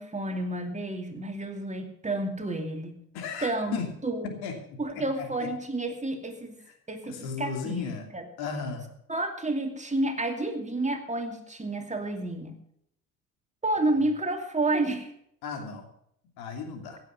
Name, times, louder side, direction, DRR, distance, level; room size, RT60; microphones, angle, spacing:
voice 1, 0.0-3.0 3.4-4.3 4.8-6.6 6.9-8.3 9.1-12.6 13.6-15.1, right 2 dB, 15° right, 5 dB, 2.5 m, -30 dB
voice 2, 3.1-3.9 4.2-5.5 7.1-8.1 8.4-8.9 15.4-15.8 16.4-17.0, left 5 dB, 65° left, 4 dB, 2.8 m, -35 dB
16.0 x 7.8 x 6.9 m, 0.72 s
hypercardioid pair, 60°, 41 cm